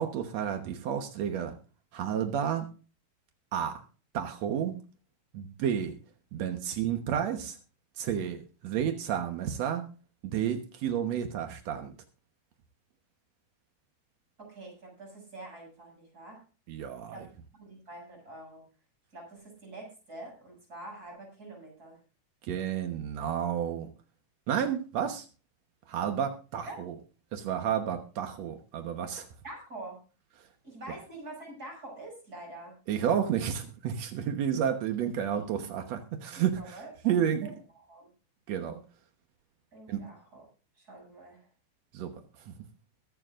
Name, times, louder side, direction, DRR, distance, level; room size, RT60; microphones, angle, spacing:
voice 1, 0.0-1.6 1.9-2.7 3.5-3.7 4.1-4.7 5.3-6.0 6.3-7.6 8.0-9.8 10.2-11.9 16.7-17.3 22.5-23.9 24.5-25.3 25.9-27.0 27.3-29.3 32.9-36.8 37.0-37.5 38.5-38.8 39.9-40.0 41.9-42.1 42.5-42.6, right 9 dB, 70° right, 5 dB, 1.6 m, -31 dB
voice 2, 14.4-16.4 17.1-17.3 17.6-18.6 19.1-22.0 26.6-26.8 29.4-30.0 30.6-32.7 36.3-37.1 37.4-37.5 37.9-38.1 39.7-40.5 40.8-41.4, right 2 dB, 20° right, -1 dB, 7.3 m, -45 dB
22.5 x 9.6 x 2.5 m, 0.35 s
omnidirectional pair, 4.8 m